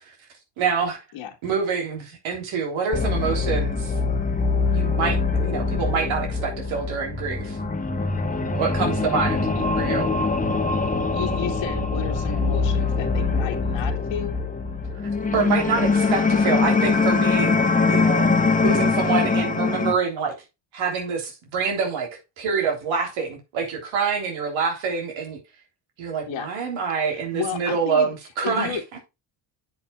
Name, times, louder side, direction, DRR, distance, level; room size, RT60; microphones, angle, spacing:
voice 1, 0.6-1.0 1.4-3.9 4.7-7.6 8.5-9.5 9.8-10.2 14.9-17.6 17.9-20.3 20.7-22.1 22.4-25.4 26.0-28.8, right 5 dB, 85° right, 3.7 m, -26 dB
sound 1, 2.9-19.9, left 4 dB, 15° left, 1.3 m, -23 dB
voice 2, 11.1-14.4 26.3-26.5 27.1-28.1 28.4-28.8, left 8 dB, 80° left, 2.1 m, -32 dB
10.5 x 7.0 x 2.4 m
cardioid pair, 85°, 46 cm